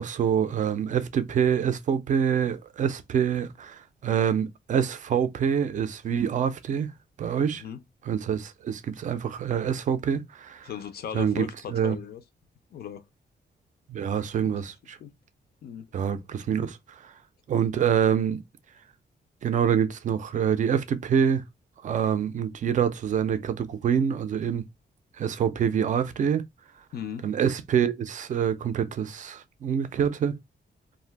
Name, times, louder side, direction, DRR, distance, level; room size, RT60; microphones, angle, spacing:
voice 1, 0.0-6.9 7.2-7.6 8.1-10.7 11.1-12.0 13.9-15.0 15.9-17.1 17.5-18.4 19.4-21.4 21.8-24.7 25.2-26.4 27.2-30.4, right 8 dB, 45° right, 0.4 m, -26 dB
voice 2, 10.6-12.2 12.7-13.0 14.5-14.6 15.0-15.1 15.6-15.9 26.9-27.3, left 9 dB, 60° left, 0.4 m, -37 dB
2.5 x 2.1 x 3.2 m
wide cardioid pair, 170°, 18 cm